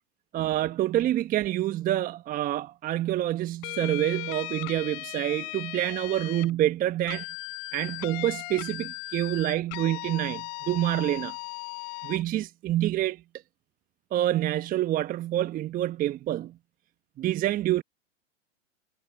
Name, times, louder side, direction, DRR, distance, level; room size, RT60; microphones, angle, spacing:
voice 1, 0.3-7.3 7.7-11.3 12.0-13.2 14.1-16.5 17.2-17.8, right 13 dB, 25° right, 1.2 m, -27 dB
sound 1, 3.6-6.5 7.1-12.2, left 40 dB or more, 40° left, 4.5 m, -37 dB
hypercardioid pair, 115°, 37 cm